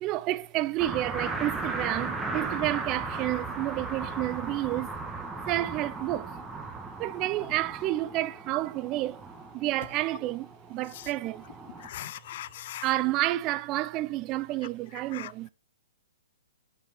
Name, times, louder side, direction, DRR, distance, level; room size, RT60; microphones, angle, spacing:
voice 1, 0.0-4.9 5.5-6.3 7.0-9.2 9.5-11.5 12.0-12.1 12.8-15.5, right 16 dB, 30° right, 0.5 m, -30 dB
sound 1, 0.8-11.9, right 3 dB, 10° right, 1.4 m, -37 dB
voice 2, 11.8-12.9 15.1-15.5, left 13 dB, 50° left, 0.4 m, -40 dB
7.3 x 7.1 x 4.5 m
figure-of-eight pair, 120°, 0 cm